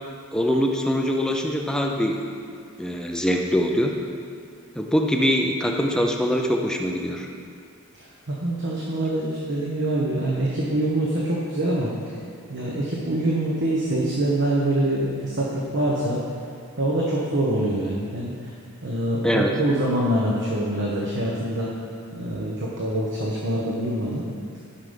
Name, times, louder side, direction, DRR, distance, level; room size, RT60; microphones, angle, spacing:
voice 1, 0.3-2.2 2.8-3.9 4.8-7.3 19.2-19.5, equal, 5° left, 1 dB, 0.5 m, -23 dB
voice 2, 7.9-12.2 12.5-16.2 16.8-18.5 18.8-21.7 22.1-24.2, right 1 dB, 60° right, -4 dB, 1.2 m, -25 dB
12.0 x 5.9 x 5.2 m, 2.3 s
head